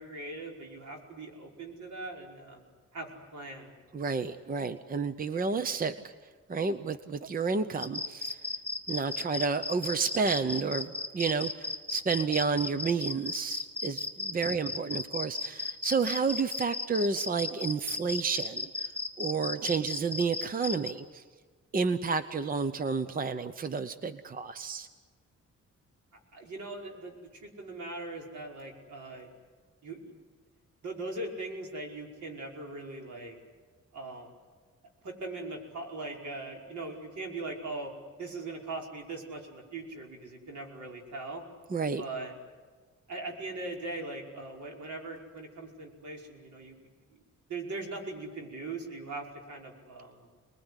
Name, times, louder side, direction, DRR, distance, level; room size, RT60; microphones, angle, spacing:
voice 1, 0.0-2.6 2.9-3.7 14.4-14.9 26.3-29.3 29.8-30.1 30.8-33.4 33.9-34.3 35.0-37.9 38.2-41.4 42.0-42.3 43.1-46.8 47.1-47.2 47.5-50.3, right 2 dB, 75° right, 0 dB, 5.4 m, -40 dB
voice 2, 3.9-6.1 6.5-8.4 8.9-18.9 19.2-21.2 21.7-24.9 41.7-42.0, right 5 dB, 30° right, 11 dB, 0.8 m, -31 dB
sound 1, 7.8-20.9, left 3 dB, 5° left, 2.0 m, -35 dB
27.5 x 21.0 x 9.9 m, 1.5 s
wide cardioid pair, 175°, 29 cm